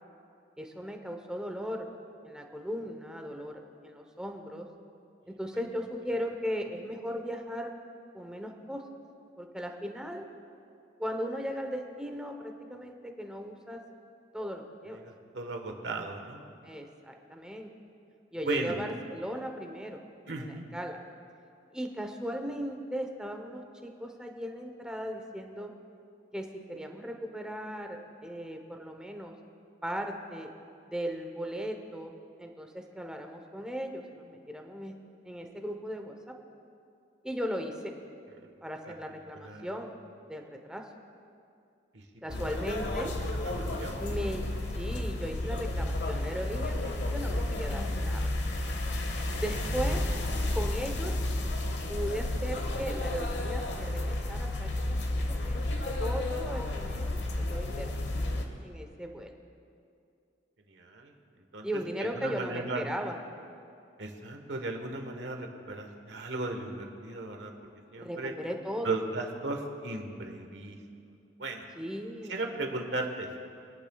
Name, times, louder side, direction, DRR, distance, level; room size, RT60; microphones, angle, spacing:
voice 1, 0.6-1.9 2.2-4.7 5.3-7.7 8.1-8.8 9.4-10.3 11.0-13.8 14.3-15.0 16.6-17.7 18.3-20.0 20.4-21.0 21.7-25.7 26.3-29.3 29.8-30.5 30.9-35.0 35.2-36.4 37.2-37.9 38.6-39.9 40.2-40.8 42.2-43.1 44.0-48.2 49.4-50.0 50.5-51.2 51.9-55.6 56.0-58.2 58.6-59.3 61.6-63.2 68.0-69.0 71.8-72.4, equal, 5° right, 3 dB, 0.9 m, -37 dB
voice 2, 15.0-16.4 18.4-18.8 20.3-20.7 38.8-38.9 39.3-39.7 41.9-42.0 43.0-43.1 43.4-44.3 49.2-49.4 60.7-61.1 61.5-61.7 62.0-62.8 64.0-67.5 67.9-68.3 68.8-70.8 71.4-71.6 72.3-73.3, right 2 dB, 80° right, 3 dB, 1.3 m, -36 dB
sound 1, 42.3-58.4, left 1 dB, 75° left, 1.1 m, -32 dB
24.0 x 10.5 x 2.4 m, 2.5 s
head